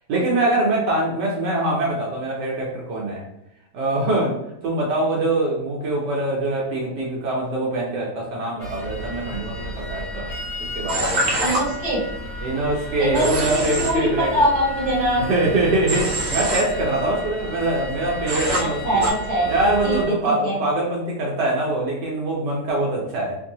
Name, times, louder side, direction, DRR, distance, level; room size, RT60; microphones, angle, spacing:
voice 1, 0.1-3.2 3.7-4.4 4.6-10.3 10.6-11.2 12.4-14.3 15.2-19.1 19.5-23.4, right 2 dB, 80° right, -3 dB, 1.3 m, -23 dB
sound 1, 8.6-20.0, equal, 55° left, 1.2 m, -33 dB
Human voice / Train, 10.9-11.6 13.2-13.9 15.9-16.6 18.3-18.6 19.0-19.1, right 1 dB, 60° right, 0.9 m, -24 dB
voice 2, 11.4-12.0 13.0-15.2 18.6-19.5 19.8-20.0 20.2-20.6, equal, 45° right, -5 dB, 1.6 m, -22 dB
3.2 x 2.6 x 2.7 m, 0.83 s
omnidirectional pair, 1.8 m